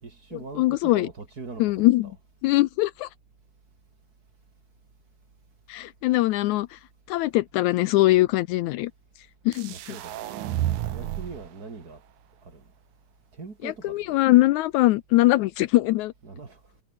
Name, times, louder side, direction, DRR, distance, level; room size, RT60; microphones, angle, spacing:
voice 1, 0.0-2.2 9.7-10.4 10.9-12.0 12.4-12.7 13.3-14.2 16.2-16.6, right 4 dB, 30° right, 2.7 m, -42 dB
voice 2, 0.6-1.1 1.6-2.1 2.4-3.1 5.7-6.8 7.1-8.9 9.5-9.7 13.6-16.1, left 17 dB, 80° left, 1.9 m, -21 dB
sound 1, 9.5-11.5, right 13 dB, 75° right, 2.5 m, -30 dB
omnidirectional pair, 3.6 m